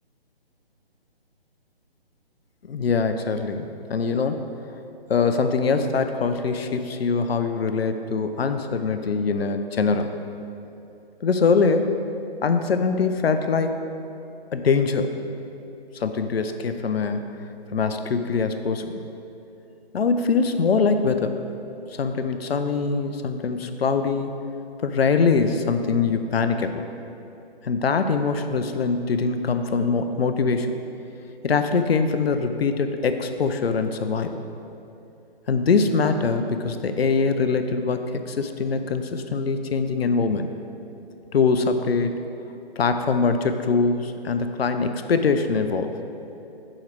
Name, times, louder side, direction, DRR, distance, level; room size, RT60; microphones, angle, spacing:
voice 1, 2.6-4.5 5.1-10.2 11.2-12.0 12.4-13.8 14.5-15.1 15.9-17.4 17.7-19.0 19.9-21.4 21.9-24.3 24.8-26.9 27.6-30.7 31.4-34.3 35.5-40.5 41.3-42.2 42.8-45.9, left 4 dB, 75° left, 8 dB, 0.5 m, -23 dB
6.4 x 4.8 x 4.5 m, 2.8 s
figure-of-eight pair, 145°, 31 cm